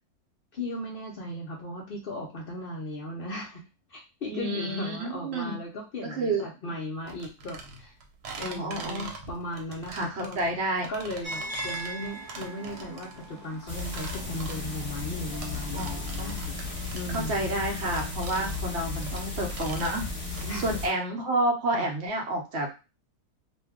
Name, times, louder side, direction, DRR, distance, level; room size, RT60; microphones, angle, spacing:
voice 1, 0.5-3.6 3.9-7.9 8.4-10.4 10.9-16.6 16.9-17.5 18.4-18.6 20.4-20.8 21.7-21.9, left 1 dB, 65° left, -1 dB, 0.5 m, -37 dB
voice 2, 4.3-5.6 6.0-6.4 8.4-9.1 9.9-10.9 15.7-16.4 17.1-22.7, right 1 dB, 55° right, 1 dB, 0.8 m, -30 dB
sound 1, 7.1-20.5, right 4 dB, 75° right, 1.2 m, -43 dB
sound 2, 11.2-17.2, right 1 dB, 25° right, 0.7 m, -41 dB
sound 3, 13.7-20.9, left 4 dB, 10° left, 1.1 m, -35 dB
2.6 x 2.2 x 3.4 m, 0.30 s
omnidirectional pair, 1.7 m